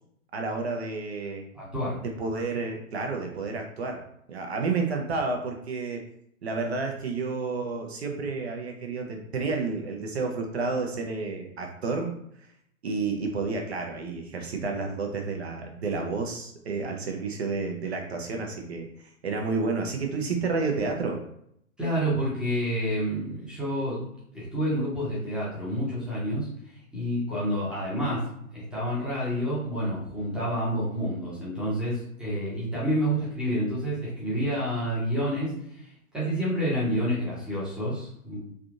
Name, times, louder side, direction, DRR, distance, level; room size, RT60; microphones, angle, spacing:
voice 1, 0.3-1.4 2.2-4.0 4.3-6.0 6.4-12.1 12.8-18.9 19.2-21.2, right 4 dB, 45° right, 2 dB, 0.6 m, -30 dB
voice 2, 1.5-2.0 21.8-24.0 24.3-26.5 26.9-28.3 28.5-38.4, equal, ahead, -8 dB, 0.7 m, -29 dB
3.3 x 2.7 x 2.4 m, 0.73 s
figure-of-eight pair, 120°, 44 cm